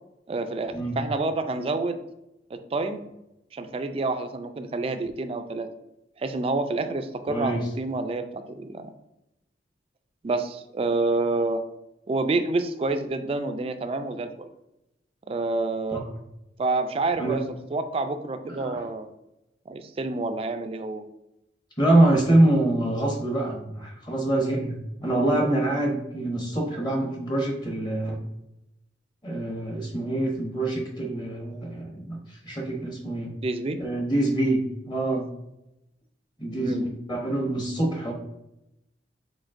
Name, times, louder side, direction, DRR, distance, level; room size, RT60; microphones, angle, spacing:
voice 1, 0.3-2.0 2.5-3.0 3.5-5.7 6.2-8.9 10.2-11.6 12.1-14.3 15.3-16.0 16.6-17.4 17.7-19.1 19.7-21.0 33.4-33.8 36.6-36.8, right 3 dB, 30° right, 9 dB, 0.3 m, -28 dB
voice 2, 7.3-7.6 17.2-17.4 18.5-18.8 21.8-28.2 29.2-33.3 33.8-35.3 36.4-38.1, right 1 dB, 25° left, 0 dB, 0.8 m, -25 dB
5.0 x 3.9 x 2.5 m, 0.89 s
head